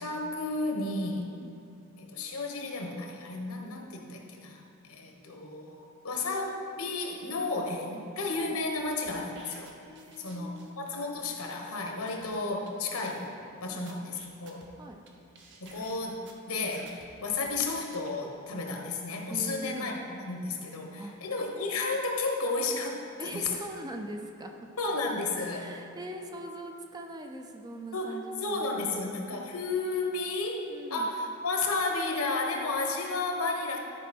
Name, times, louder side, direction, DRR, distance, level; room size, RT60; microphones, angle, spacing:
voice 1, 0.0-1.3 2.0-4.6 4.9-9.7 10.2-13.3 13.6-14.6 15.6-16.2 16.5-23.3 24.8-25.6 27.9-33.8, left 3 dB, 80° left, 1 dB, 1.3 m, -32 dB
sound 1, 8.8-10.9 11.2-11.3 11.8-11.9 12.1-12.3 12.7-12.8 12.9-13.5 13.9-15.1 15.3-17.1 17.4-18.1, right 3 dB, 50° right, 1.0 m, -53 dB
voice 2, 9.9-10.7 13.7-13.8 14.8-15.0 19.3-20.0 21.0-21.3 23.2-24.6 25.5-29.2 30.7-31.1, right 1 dB, 15° right, 3 dB, 0.5 m, -42 dB
12.0 x 5.2 x 4.4 m, 2.8 s
head